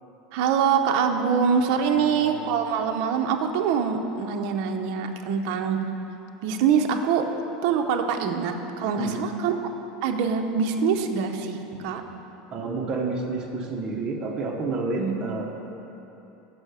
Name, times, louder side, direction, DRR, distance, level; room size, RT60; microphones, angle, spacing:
voice 1, 0.3-5.8 6.4-7.2 7.6-9.6 10.0-12.0 15.0-15.2, right 6 dB, 55° right, 4 dB, 0.6 m, -24 dB
voice 2, 2.0-2.5 9.0-9.2 12.5-15.5, right 3 dB, 30° right, 0 dB, 0.9 m, -30 dB
6.1 x 5.5 x 6.7 m, 3.0 s
supercardioid pair, 145°, 3 cm